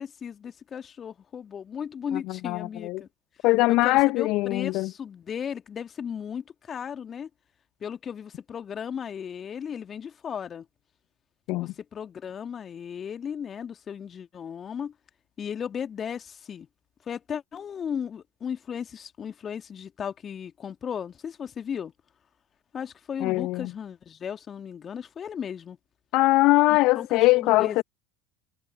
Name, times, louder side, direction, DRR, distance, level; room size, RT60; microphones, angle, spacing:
voice 1, 0.0-3.1 3.7-7.3 7.8-10.7 11.6-14.9 15.4-16.7 17.1-21.9 22.7-25.8 26.7-27.8, left 7 dB, 35° left, 2.1 m, -36 dB
voice 2, 2.3-3.0 3.4-4.9 11.5-11.7 23.2-23.7 26.1-27.8, left 21 dB, 55° left, 0.6 m, -22 dB
figure-of-eight pair, 70°, 0 cm